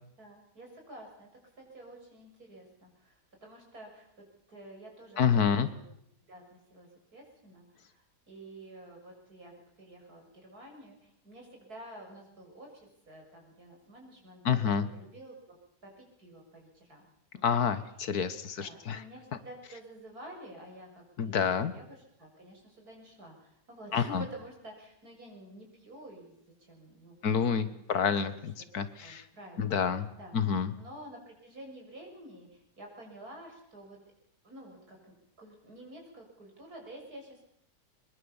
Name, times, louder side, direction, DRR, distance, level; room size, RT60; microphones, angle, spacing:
voice 1, 0.2-1.3 1.6-5.8 6.3-9.5 9.8-15.6 15.8-17.0 17.3-17.5 18.6-26.3 26.7-27.2 27.5-28.4 28.8-29.9 30.2-30.3 30.7-34.0 34.4-35.0 35.4-37.4, right 1 dB, 90° right, 1 dB, 7.3 m, -50 dB
voice 2, 5.2-5.7 14.5-14.9 17.4-19.0 21.2-21.7 23.9-24.3 27.2-29.2 29.6-30.1 30.3-30.7, left 7 dB, 85° left, 13 dB, 1.9 m, -28 dB
23.0 x 21.5 x 7.2 m, 0.74 s
omnidirectional pair, 1.6 m